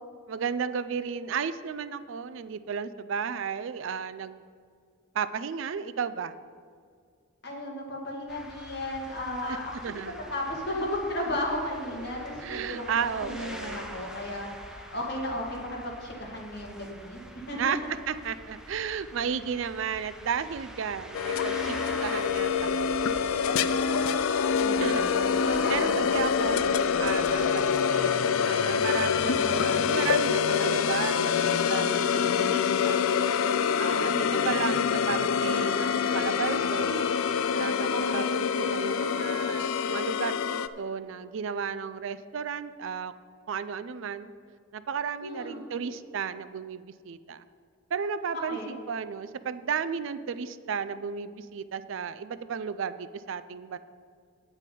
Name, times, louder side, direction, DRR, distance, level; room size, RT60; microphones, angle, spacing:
voice 1, 0.3-4.4 5.1-6.4 9.5-9.6 9.8-10.2 12.4-14.0 17.6-23.0 24.8-25.1 25.3-33.0 33.8-37.0 37.5-43.1 43.5-44.3 44.7-47.4 47.9-53.8, right 6 dB, 65° right, 14 dB, 0.4 m, -34 dB
voice 2, 7.4-10.0 10.3-12.8 13.2-17.2 17.5-17.7 24.6-26.2 37.9-38.3 45.2-45.6 48.3-48.7, left 1 dB, 50° left, -2 dB, 2.1 m, -34 dB
sound 1, 8.3-27.5, equal, 5° right, 0.6 m, -45 dB
sound 2, 21.1-40.7, left 6 dB, 75° left, 0.4 m, -26 dB
9.2 x 8.3 x 5.3 m, 2.2 s
head